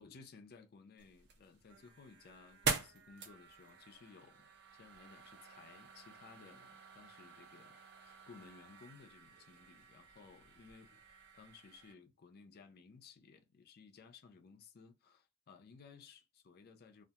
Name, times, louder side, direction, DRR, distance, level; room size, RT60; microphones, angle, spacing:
voice 1, 0.0-11.0 11.3-17.0, left 5 dB, 45° left, 0.4 m, -58 dB
sound 1, 1.0-11.9, right 5 dB, 55° right, 0.6 m, -46 dB
2.4 x 2.3 x 2.7 m
head